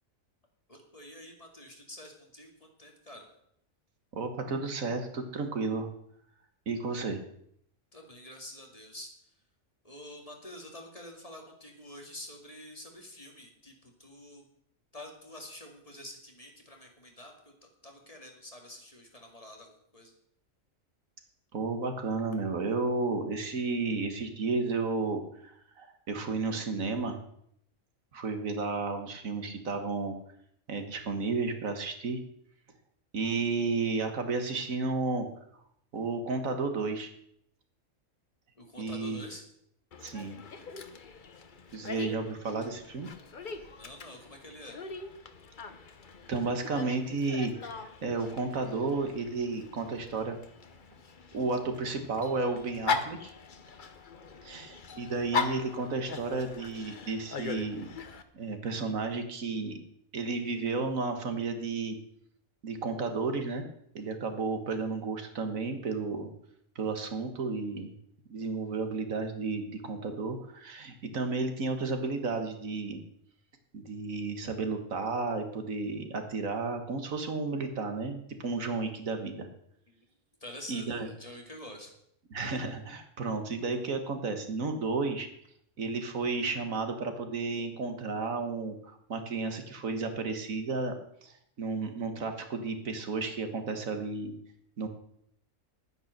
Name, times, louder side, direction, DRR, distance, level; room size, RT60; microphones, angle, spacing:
voice 1, 0.7-3.3 7.9-9.1 9.8-14.4 14.9-17.5 17.8-20.1 38.6-39.4 43.8-44.8 80.4-81.9, left 1 dB, 25° left, 1 dB, 2.2 m, -47 dB
voice 2, 4.1-5.9 6.7-7.2 21.5-27.2 28.1-30.2 30.7-32.2 33.1-35.3 35.9-37.1 38.8-39.2 40.0-40.4 41.7-43.1 46.3-50.4 51.3-53.3 54.4-57.9 58.3-59.8 60.1-62.0 62.6-63.6 64.0-66.3 66.8-67.9 68.3-73.0 73.7-79.5 80.7-81.1 82.3-85.3 85.8-90.9 91.2-94.3 94.8-94.9, right 3 dB, 75° right, 6 dB, 1.8 m, -32 dB
Dog, 39.9-58.2, left 5 dB, 40° left, 1.0 m, -40 dB
10.5 x 9.8 x 6.6 m, 0.71 s
omnidirectional pair, 1.4 m